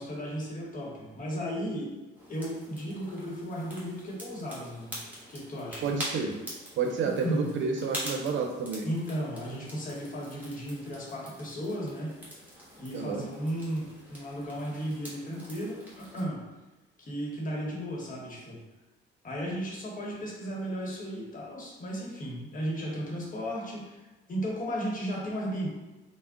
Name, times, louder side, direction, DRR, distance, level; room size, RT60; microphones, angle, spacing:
voice 1, 0.0-2.0 2.3-5.0 5.3-5.9 7.0-7.5 8.8-12.2 12.8-16.4 17.0-18.6 19.2-25.7, equal, 45° left, -3 dB, 1.0 m, -35 dB
sound 1, 2.2-16.2, equal, 10° right, 1.3 m, -44 dB
voice 2, 5.8-6.3 6.8-8.9 12.9-13.2, right 5 dB, 70° right, 3 dB, 0.6 m, -30 dB
3.4 x 2.1 x 3.6 m, 1.1 s
cardioid pair, 90°, 20 cm